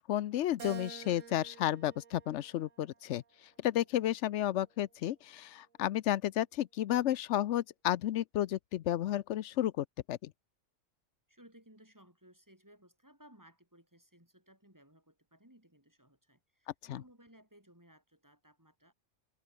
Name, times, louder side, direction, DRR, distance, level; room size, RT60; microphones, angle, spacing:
voice 1, 0.1-3.2 3.6-10.3 16.9-17.0, left 12 dB, 70° left, 0.9 m, -32 dB
Keyboard (musical), 0.6-3.1 3.7-4.9, right 7 dB, 85° right, 1.8 m, -50 dB
voice 2, 11.3-18.9, right 1 dB, 15° right, 6.0 m, -61 dB
omnidirectional pair, 1.3 m